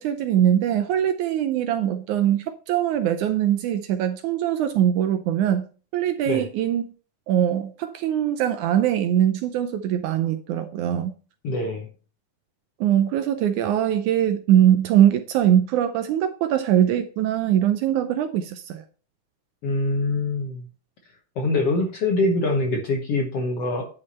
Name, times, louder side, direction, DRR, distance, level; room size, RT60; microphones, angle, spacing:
voice 1, 0.0-5.7 5.9-6.8 7.3-11.1 12.8-18.8, right 10 dB, 75° right, 1.8 m, -22 dB
voice 2, 11.4-11.9 19.6-20.7 21.3-23.9, left 2 dB, 60° left, 1.7 m, -24 dB
10.0 x 5.4 x 4.2 m
omnidirectional pair, 4.0 m